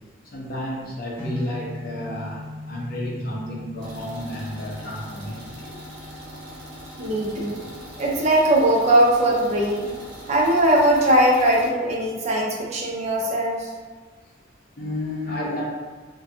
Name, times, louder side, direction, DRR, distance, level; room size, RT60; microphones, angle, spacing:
voice 1, 0.3-5.8 14.8-15.6, left 1 dB, 50° left, -4 dB, 0.6 m, -31 dB
sound 1, 1.2-13.2, left 1 dB, 30° left, 1.0 m, -42 dB
sound 2, 3.8-11.7, equal, 80° right, 0.9 m, -42 dB
voice 2, 7.0-7.7 8.0-9.9 10.3-13.7, right 1 dB, 35° right, -3 dB, 0.4 m, -20 dB
2.4 x 2.2 x 2.6 m, 1.5 s
head